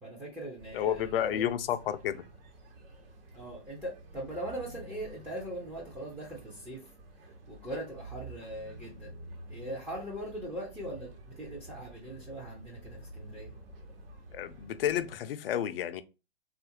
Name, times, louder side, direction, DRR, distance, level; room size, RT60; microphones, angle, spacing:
voice 1, 0.0-1.5 3.3-6.9 7.5-9.1 9.5-13.5, right 1 dB, 5° right, 0.5 m, -40 dB
sound 1, 0.6-15.2, right 1 dB, 60° right, 1.1 m, -50 dB
voice 2, 0.7-2.2 14.3-16.0, left 10 dB, 60° left, 0.5 m, -31 dB
3.6 x 2.4 x 2.7 m
hypercardioid pair, 130°, 33 cm